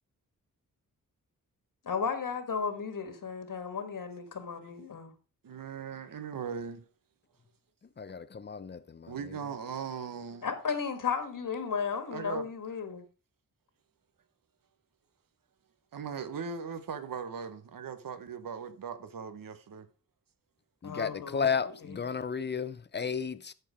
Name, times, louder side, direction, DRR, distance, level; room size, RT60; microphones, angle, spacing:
voice 1, 1.8-5.1 10.4-13.0 20.8-21.5 21.9-22.0, left 6 dB, 70° left, 1.7 m, -34 dB
voice 2, 5.4-6.8 9.1-10.5 12.1-12.5 15.9-19.9, right 6 dB, 75° right, 1.1 m, -39 dB
voice 3, 8.0-9.2 20.8-23.5, left 6 dB, 30° left, 0.7 m, -33 dB
13.0 x 4.5 x 4.9 m
cardioid pair, 70°, 33 cm